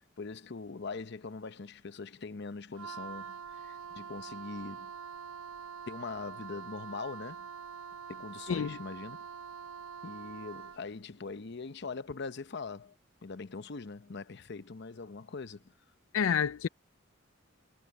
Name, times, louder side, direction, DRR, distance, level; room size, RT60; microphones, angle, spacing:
voice 1, 0.2-3.4 3.6-4.9 5.9-7.5 8.1-9.3 10.0-12.9 13.2-15.7, left 4 dB, 60° left, 0.8 m, -42 dB
Wind instrument woodwind instrument, 2.7-10.9, right 6 dB, 85° right, 0.9 m, -45 dB
voice 2, 16.1-16.7, left 7 dB, 90° left, 0.4 m, -28 dB
head